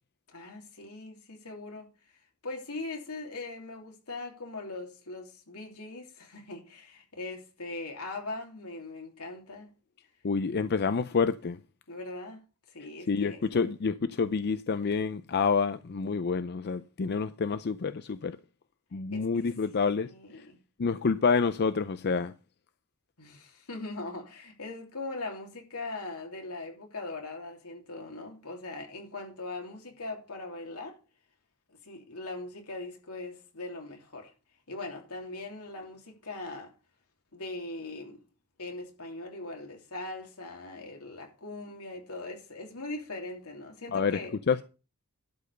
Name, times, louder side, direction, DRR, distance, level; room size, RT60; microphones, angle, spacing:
voice 1, 0.3-1.9 2.4-9.7 11.9-13.6 19.1-19.3 19.9-20.6 23.2-31.0 31.7-34.3 34.7-36.7 37.3-38.2 38.6-44.4, left 2 dB, 85° left, 3.1 m, -40 dB
voice 2, 10.2-11.6 13.1-18.4 18.9-20.1 20.8-22.3 43.9-44.2 44.5-44.6, left 5 dB, 50° left, 0.5 m, -28 dB
12.0 x 5.4 x 6.6 m
head